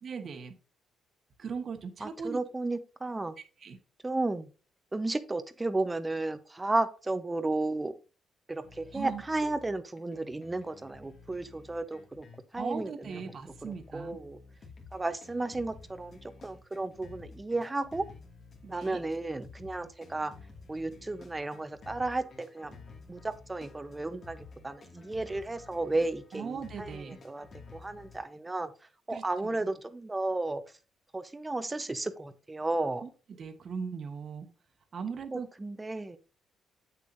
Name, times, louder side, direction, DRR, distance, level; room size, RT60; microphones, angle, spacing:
voice 1, 0.0-0.5 1.4-2.4 3.6-3.8 8.9-9.2 12.6-14.2 18.6-19.0 26.3-27.2 29.1-29.5 33.0-34.5 34.9-35.5, right 6 dB, 50° right, 6 dB, 1.5 m, -39 dB
voice 2, 2.0-3.3 4.0-4.5 4.9-8.0 8.5-12.3 12.5-13.2 13.6-14.4 14.9-18.1 18.7-20.3 20.7-22.8 23.1-27.5 27.7-28.7 29.1-30.6 31.1-33.0 35.3-36.2, right 2 dB, 20° right, 11 dB, 0.9 m, -33 dB
sound 1, 8.6-28.2, left 4 dB, 50° left, 2.3 m, -52 dB
8.3 x 7.1 x 2.7 m, 0.34 s
cardioid pair, 90°, 0 cm